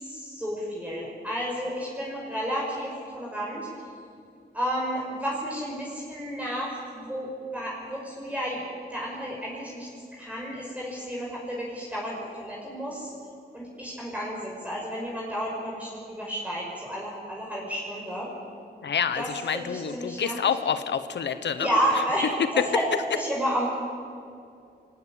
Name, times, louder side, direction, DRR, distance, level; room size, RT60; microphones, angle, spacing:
voice 1, 0.0-3.7 4.5-8.6 8.9-9.9 10.2-13.1 13.5-18.3 19.2-19.3 19.5-20.3 21.6-22.3 22.6-22.8 23.1-23.7, equal, 10° right, -4 dB, 5.8 m, -31 dB
voice 2, 18.8-21.7, left 7 dB, 80° left, 10 dB, 1.2 m, -28 dB
23.5 x 19.0 x 8.8 m, 2.4 s
cardioid pair, 85°, 18 cm